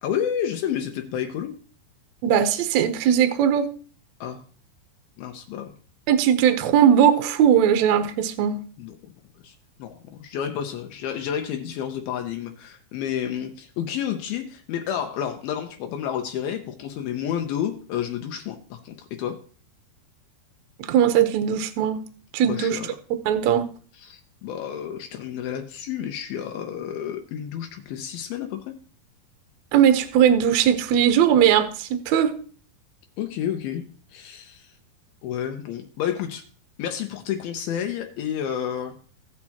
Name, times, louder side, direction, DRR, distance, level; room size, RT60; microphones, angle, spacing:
voice 1, 0.0-1.5 4.2-4.4 5.2-5.7 8.8-9.1 9.4-19.4 22.4-23.0 23.9-28.8 33.2-33.8 34.1-34.7 35.2-36.4 36.8-38.9, left 9 dB, 80° left, 5 dB, 2.6 m, -30 dB
voice 2, 2.2-3.7 6.1-8.5 20.9-22.0 22.3-22.8 23.3-23.7 29.7-32.3, right 9 dB, 75° right, 9 dB, 1.6 m, -19 dB
17.0 x 6.3 x 2.9 m, 0.41 s
omnidirectional pair, 4.4 m